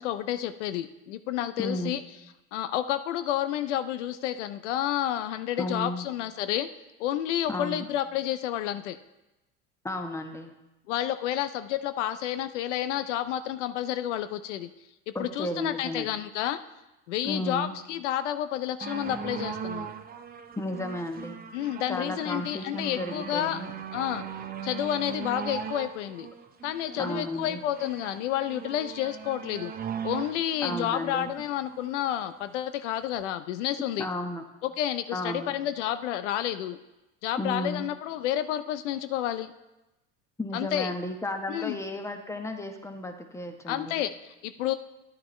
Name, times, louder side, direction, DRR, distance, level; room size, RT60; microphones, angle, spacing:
voice 1, 0.0-2.0 2.5-6.7 7.0-9.0 10.9-14.7 15.1-16.6 17.1-19.9 21.5-23.6 23.9-24.2 24.6-26.3 26.6-29.7 30.0-34.1 34.6-36.8 37.2-39.5 40.5-40.9 41.5-41.8 43.7-44.7, left 11 dB, 90° left, 11 dB, 0.5 m, -30 dB
voice 2, 1.6-1.9 5.6-6.1 7.5-7.8 9.8-10.5 15.1-16.1 17.2-17.7 20.6-21.4 21.9-23.7 27.0-27.6 30.6-31.3 34.0-34.4 35.1-35.5 37.4-37.9 40.4-44.0, left 1 dB, 10° left, 5 dB, 1.1 m, -33 dB
sound 1, 18.8-32.4 33.1-33.2, right 7 dB, 25° right, 0.7 m, -39 dB
10.5 x 8.5 x 3.1 m, 0.98 s
supercardioid pair, 90°, 35 cm